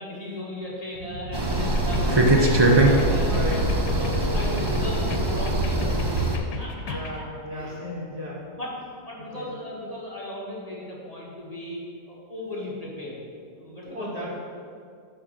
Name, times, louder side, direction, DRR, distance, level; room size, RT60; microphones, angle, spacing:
voice 1, 0.0-3.6 4.0-7.2 7.5-7.7 8.5-8.7 9.0-11.8 12.1-13.2 13.6-14.3, left 1 dB, 25° left, -6 dB, 1.5 m, -36 dB
sound 1, 1.3-6.4, right 2 dB, 40° right, 0.3 m, -22 dB
sound 2, 1.6-7.2, left 4 dB, 85° left, 1.4 m, -35 dB
voice 2, 3.3-3.7 6.8-8.5 9.2-9.5 13.9-14.3, left 1 dB, 80° right, -5 dB, 2.5 m, -34 dB
sound 3, 7.4-8.8 9.2-9.3, right 2 dB, 25° right, 1.3 m, -44 dB
9.5 x 4.6 x 6.3 m, 2.3 s
omnidirectional pair, 1.7 m